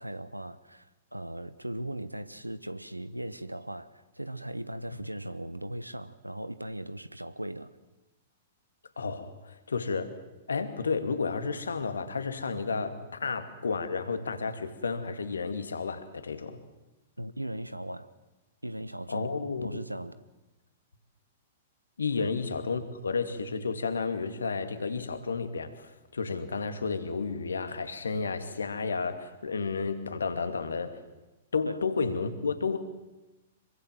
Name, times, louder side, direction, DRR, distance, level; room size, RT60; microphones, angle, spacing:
voice 1, 0.0-7.7 17.2-18.1 18.6-19.3 19.6-20.2 22.2-22.3 31.7-31.8, right 1 dB, 90° right, 1.2 m, -38 dB
voice 2, 9.0-10.2 10.5-16.6 19.1-19.7 22.0-31.0 31.5-32.8, left 4 dB, 70° left, 2.4 m, -32 dB
26.0 x 23.5 x 7.7 m
figure-of-eight pair, 105°, 0 cm